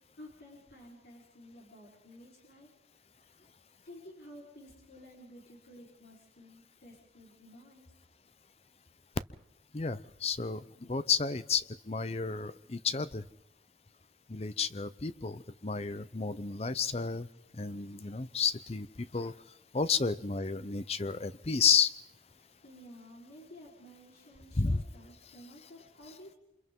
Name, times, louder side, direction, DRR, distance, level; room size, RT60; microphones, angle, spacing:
voice 1, 0.2-2.7 3.2-3.4 3.8-7.9 22.4-26.4, equal, 70° left, -3 dB, 4.3 m, -53 dB
voice 2, 9.7-13.2 14.3-17.3 17.5-19.3 19.7-21.9 24.6-24.8, left 5 dB, 35° left, 14 dB, 0.7 m, -31 dB
28.0 x 27.0 x 3.8 m, 0.83 s
head